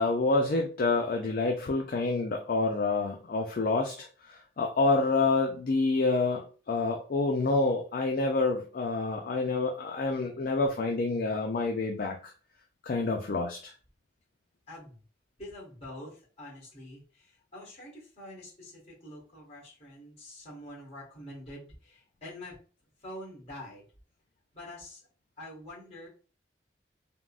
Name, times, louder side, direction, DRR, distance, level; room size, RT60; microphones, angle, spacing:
voice 1, 0.0-12.3 12.8-13.7, left 3 dB, 50° left, 1 dB, 0.3 m, -28 dB
voice 2, 14.7-15.0 15.4-22.6 23.0-23.8 24.5-25.1 25.4-26.1, left 1 dB, 35° left, -4 dB, 1.4 m, -46 dB
3.6 x 2.0 x 2.4 m, 0.38 s
head